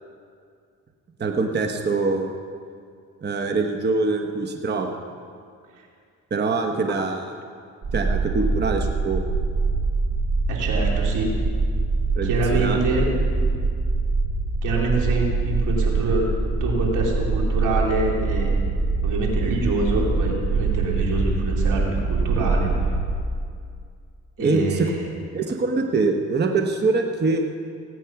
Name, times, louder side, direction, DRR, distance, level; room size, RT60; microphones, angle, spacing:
voice 1, 1.2-2.3 3.2-5.0 6.3-7.2 7.9-9.3 12.1-12.8 13.1-13.2 24.4-24.9 25.3-27.4, right 3 dB, 35° right, 4 dB, 1.1 m, -24 dB
sound 1, 7.8-23.1, right 3 dB, 70° right, 4.0 m, -24 dB
voice 2, 10.5-11.3 12.2-13.1 14.6-16.3 16.6-18.5 19.0-22.7 24.4-25.1, right 3 dB, 90° right, -1 dB, 2.9 m, -25 dB
17.0 x 9.2 x 5.9 m, 2.2 s
cardioid pair, 90°, 30 cm